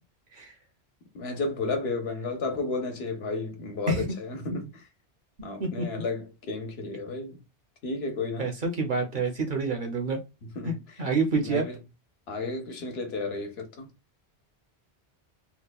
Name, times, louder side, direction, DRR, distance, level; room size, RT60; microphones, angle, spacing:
voice 1, 1.1-4.8 5.4-7.4 7.8-8.6 10.4-11.0 11.4-11.8 12.3-13.9, left 3 dB, 70° left, 1.0 m, -33 dB
voice 2, 8.4-10.2 10.6-11.6, right 3 dB, 55° right, 0.8 m, -28 dB
2.9 x 2.1 x 2.2 m
omnidirectional pair, 1.1 m